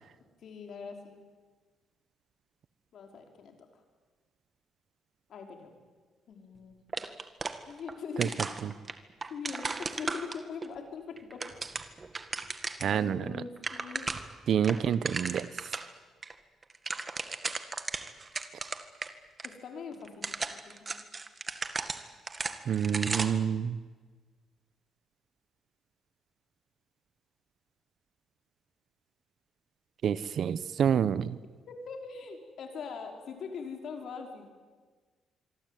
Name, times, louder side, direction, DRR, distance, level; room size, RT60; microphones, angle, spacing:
voice 1, 0.4-1.2 2.9-3.8 5.3-5.7 6.3-6.8 7.7-8.4 9.3-11.4 12.8-14.0 19.4-21.0 31.7-34.5, left 5 dB, 65° left, 3 dB, 5.4 m, -42 dB
sound 1, 6.9-7.9 8.2-10.7 11.2-13.0 13.3-13.4 13.6-14.3 14.6-15.9 16.2-16.3 16.6-19.1 19.4-19.5 20.0-23.5, right 4 dB, 30° right, 1.9 m, -36 dB
voice 2, 12.8-13.2 14.5-15.5 22.7-23.8 30.0-31.4, right 8 dB, 60° right, 17 dB, 1.1 m, -27 dB
26.0 x 23.5 x 9.4 m, 1.4 s
cardioid pair, 90°, 0 cm